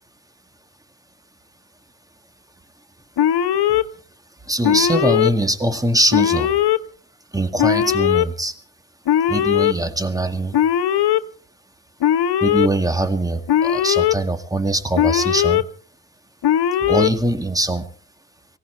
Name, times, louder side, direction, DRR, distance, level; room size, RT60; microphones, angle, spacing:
Alarm, 3.2-3.8 4.6-5.3 6.1-6.8 7.6-8.2 9.1-9.7 10.5-11.2 12.0-12.7 13.5-14.1 15.0-15.6 16.4-17.1, left 11 dB, 60° left, 1.1 m, -18 dB
voice 1, 4.5-6.6 7.3-8.5 9.3-10.6 12.4-15.6 16.8-17.9, right 1 dB, 10° right, 9 dB, 2.0 m, -22 dB
18.0 x 16.5 x 4.5 m, 0.43 s
cardioid pair, 80°, 45 cm